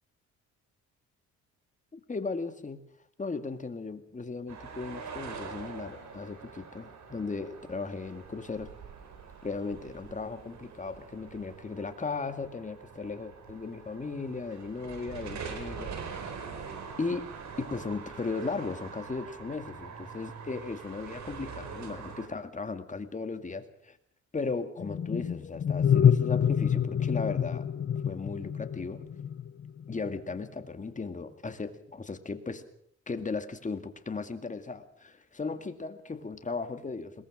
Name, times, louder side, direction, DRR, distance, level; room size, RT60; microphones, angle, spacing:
voice 1, 1.9-2.8 3.2-8.7 9.4-15.9 17.0-17.3 17.6-24.0 24.3-27.7 28.0-29.0 29.9-32.6 33.1-37.3, left 4 dB, 25° left, 8 dB, 2.1 m, -36 dB
sound 1, 4.5-22.3, right 5 dB, 65° right, 4.2 m, -44 dB
sound 2, 24.8-30.1, left 8 dB, 40° left, 0.8 m, -27 dB
21.5 x 19.0 x 6.4 m, 0.70 s
cardioid pair, 90°, 30 cm